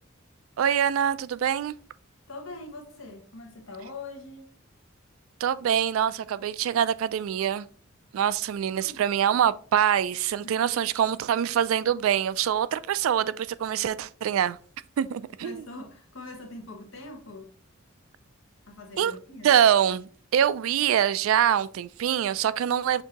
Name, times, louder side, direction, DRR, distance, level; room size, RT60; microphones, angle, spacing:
voice 1, 0.6-1.7 5.4-7.7 8.1-14.6 15.0-15.7 19.0-19.1 19.4-23.0, right 9 dB, 85° right, 0.3 m, -24 dB
voice 2, 2.3-4.5 8.7-9.0 10.4-10.6 15.4-17.5 18.7-19.6, left 2 dB, 80° left, 1.2 m, -42 dB
6.5 x 2.7 x 2.9 m
head